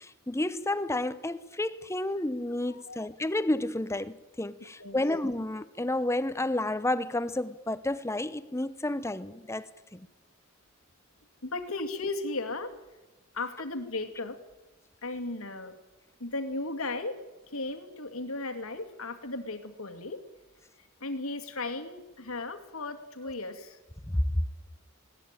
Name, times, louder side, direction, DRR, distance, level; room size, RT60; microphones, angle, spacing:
voice 1, 0.0-10.1 24.0-24.4, left 1 dB, 15° left, 0.8 m, -31 dB
voice 2, 2.7-3.0 4.8-5.0 11.4-12.7 13.3-14.4 15.0-15.8 16.2-17.2 17.5-20.2 20.8-23.8, left 2 dB, 80° left, 2.3 m, -36 dB
20.0 x 17.0 x 9.0 m
head